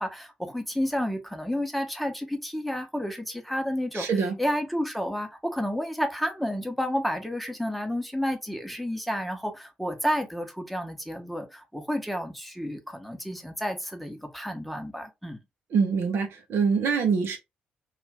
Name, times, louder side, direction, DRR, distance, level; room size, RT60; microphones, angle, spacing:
voice 1, 0.0-15.4, equal, ahead, 0.9 m, -31 dB
voice 2, 3.9-4.4 15.7-17.4, right 5 dB, 65° right, 0.7 m, -24 dB
2.5 x 2.4 x 3.3 m
hypercardioid pair, 40°, 4 cm